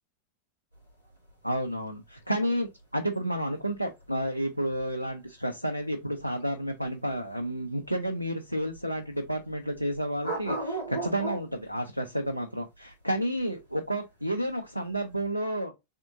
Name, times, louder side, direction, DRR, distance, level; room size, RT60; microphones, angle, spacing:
sound 1, 0.7-15.3, right 2 dB, 90° left, 2.2 m, -39 dB
voice 1, 1.4-2.7 2.9-15.7, right 1 dB, 90° right, 0.5 m, -31 dB
3.6 x 3.4 x 3.7 m
figure-of-eight pair, 90°, 0 cm